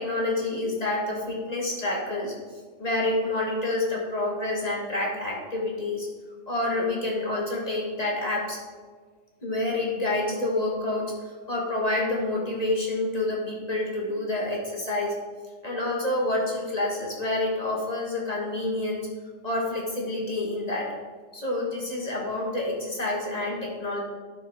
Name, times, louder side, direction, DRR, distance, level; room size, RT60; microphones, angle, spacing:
voice 1, 0.0-2.3 2.8-6.1 6.5-8.6 9.4-15.1 15.6-19.1 19.4-20.9 21.3-24.0, left 2 dB, 25° left, -2 dB, 1.3 m, -28 dB
11.5 x 6.4 x 3.4 m, 1.5 s
omnidirectional pair, 2.0 m